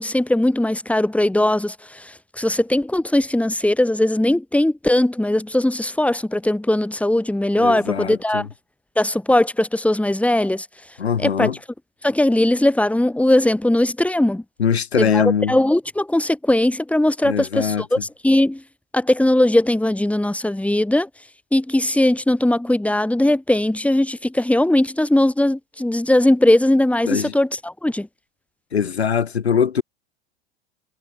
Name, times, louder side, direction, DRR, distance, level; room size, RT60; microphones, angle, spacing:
voice 1, 0.0-8.5 9.0-10.7 11.2-11.5 12.0-14.4 15.0-15.2 15.5-18.0 18.2-18.6 18.9-21.1 21.5-28.1, left 1 dB, 5° left, 5.5 m, -19 dB
voice 2, 7.6-8.5 11.0-11.6 14.6-15.6 17.2-18.0 27.0-27.3 28.7-29.8, left 7 dB, 90° left, 4.6 m, -22 dB
hypercardioid pair, 90°, 31 cm